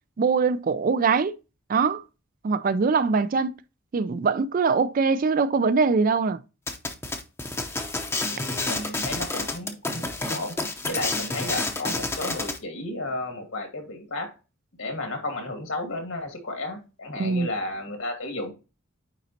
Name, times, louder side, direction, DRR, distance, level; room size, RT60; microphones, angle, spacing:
voice 1, 0.2-1.3 1.7-2.0 2.4-3.5 3.9-6.4 17.2-17.5, right 4 dB, 40° right, 0.3 m, -22 dB
sound 1, 6.7-12.6, left 2 dB, 10° left, 0.7 m, -29 dB
voice 2, 8.3-14.3 14.8-18.5, left 2 dB, 75° left, 2.1 m, -33 dB
9.2 x 4.0 x 2.8 m
head